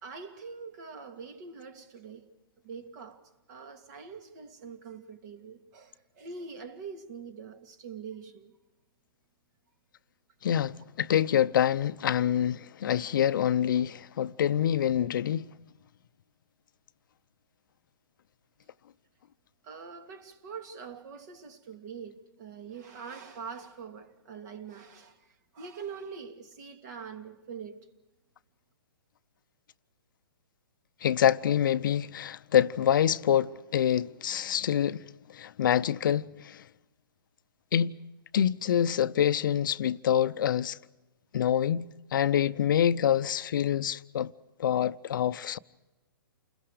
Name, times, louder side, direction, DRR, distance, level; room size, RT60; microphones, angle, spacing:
voice 1, 0.0-2.3 2.6-3.2 3.5-8.5 19.6-25.3 25.5-27.9, right 5 dB, 50° right, 2.5 m, -44 dB
voice 2, 10.4-15.5 31.0-35.0 35.3-36.6 37.7-37.9 38.3-40.8 41.3-41.9 42.1-44.3 44.6-45.6, left 10 dB, 60° left, 0.7 m, -26 dB
29.5 x 21.0 x 5.0 m
hypercardioid pair, 135°, 12 cm